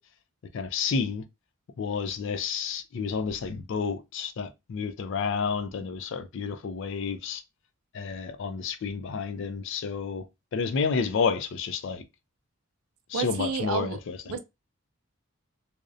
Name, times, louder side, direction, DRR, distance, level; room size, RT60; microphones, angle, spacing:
voice 1, 0.5-1.2 1.8-7.4 7.9-10.2 10.5-12.0 13.1-14.3, left 5 dB, 60° left, 0.3 m, -30 dB
voice 2, 13.1-14.0 14.3-14.4, right 5 dB, 80° right, 0.4 m, -30 dB
2.6 x 2.0 x 2.4 m
head